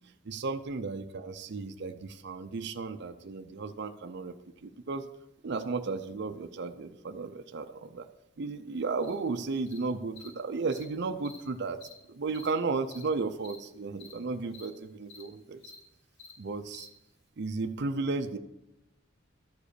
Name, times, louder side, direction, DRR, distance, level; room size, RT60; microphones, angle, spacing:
voice 1, 0.3-4.3 4.6-5.0 5.4-8.1 8.4-11.8 12.1-15.6 16.4-16.9 17.4-18.4, right 4 dB, 60° right, 7 dB, 0.5 m, -34 dB
Cricket, 9.0-9.1 9.7-9.8 10.2-10.3 10.7-10.8 11.2-11.4 11.8-11.9 12.3-12.5 12.9-13.0 13.4-13.6 14.0-14.1 14.5-14.7 15.1-15.2 15.6-15.8 16.2-16.3 16.7-16.8, left 4 dB, 90° left, 3.9 m, -49 dB
12.5 x 5.0 x 6.6 m, 0.91 s
head